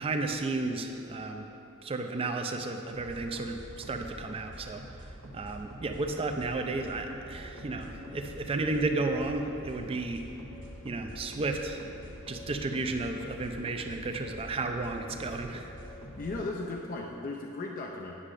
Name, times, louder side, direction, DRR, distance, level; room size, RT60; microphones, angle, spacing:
voice 1, 0.0-1.5 1.8-10.3 10.8-11.9 12.3-15.7, right 3 dB, 25° right, 5 dB, 0.4 m, -33 dB
sound 1, 2.9-16.5, equal, 70° right, 0.9 m, -47 dB
sound 2, 7.4-16.8, left 3 dB, 20° left, 0.9 m, -51 dB
voice 2, 16.2-18.1, left 2 dB, 40° left, 0 dB, 0.4 m, -36 dB
9.8 x 6.3 x 2.5 m, 2.9 s
head